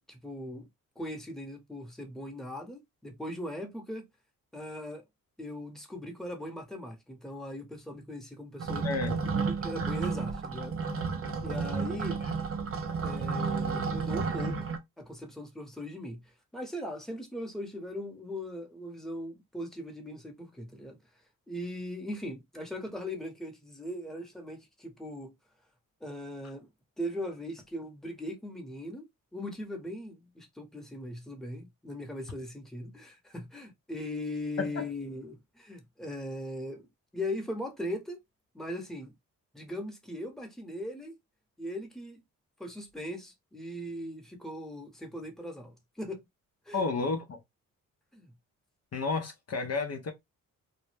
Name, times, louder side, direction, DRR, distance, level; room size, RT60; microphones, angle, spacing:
voice 1, 0.1-0.7 1.0-4.0 4.5-5.0 5.4-8.9 9.3-10.7 11.4-12.2 13.0-14.5 15.0-16.2 16.5-21.0 21.5-25.3 26.0-26.7 27.0-29.0 29.3-36.9 37.1-38.2 38.5-39.1 39.5-41.1 41.6-42.2 42.6-46.2 46.7-46.8 48.1-48.3, left 1 dB, ahead, 0.9 m, -39 dB
sound 1, 8.6-14.8, right 5 dB, 40° right, 0.6 m, -32 dB
voice 2, 8.8-9.2 34.6-34.9 46.7-47.4 48.9-50.1, left 4 dB, 45° left, 0.6 m, -31 dB
2.1 x 2.0 x 3.2 m
supercardioid pair, 55°, 35 cm